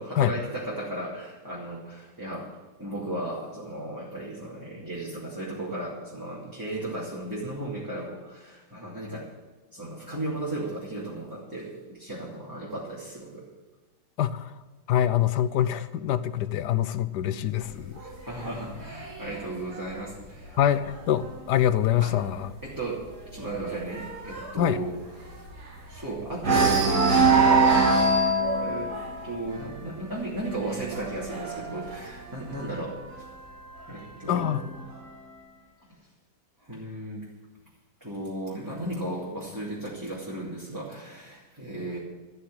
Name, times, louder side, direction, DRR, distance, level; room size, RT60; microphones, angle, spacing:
voice 1, 0.0-2.5 2.8-9.3 9.7-13.5 18.0-20.6 22.0-22.1 22.6-23.1 23.3-24.9 25.2-25.5 25.9-28.3 28.6-28.9 29.2-33.0 33.9-34.7 36.6-37.3 38.0-42.0, right 1 dB, 10° right, -7 dB, 2.8 m, -35 dB
voice 2, 14.2-14.6 14.9-18.0 20.6-22.5 24.6-24.8 34.3-34.6, left 11 dB, 70° left, 13 dB, 1.2 m, -25 dB
sound 1, 17.6-21.2 21.7-22.0 22.2-22.3 22.7-26.0 26.4-32.9 33.8-34.8, right 3 dB, 60° right, 2.6 m, -25 dB
13.5 x 6.6 x 9.7 m, 1.3 s
omnidirectional pair, 1.9 m